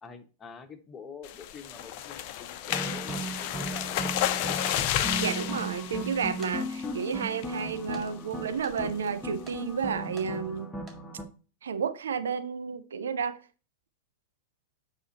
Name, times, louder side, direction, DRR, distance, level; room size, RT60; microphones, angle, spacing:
voice 1, 0.0-4.2, left 6 dB, 20° left, 1.3 m, -46 dB
sound 1, 1.2-7.0 7.4-7.7 8.0-8.1 8.5-8.8, left 12 dB, 45° left, 0.6 m, -32 dB
sound 2, 2.7-11.2, right 1 dB, ahead, 1.4 m, -37 dB
sound 3, 3.1-3.2 4.4-4.8 5.4-5.5 6.4-6.6 6.9-7.0 7.9-8.1 8.6-8.8 9.5-9.6 10.2-10.3 10.8-11.0, right 2 dB, 15° right, 1.9 m, -48 dB
voice 2, 5.2-10.7 11.6-13.4, right 6 dB, 65° right, 0.6 m, -31 dB
8.5 x 5.3 x 4.0 m
figure-of-eight pair, 90°, 0 cm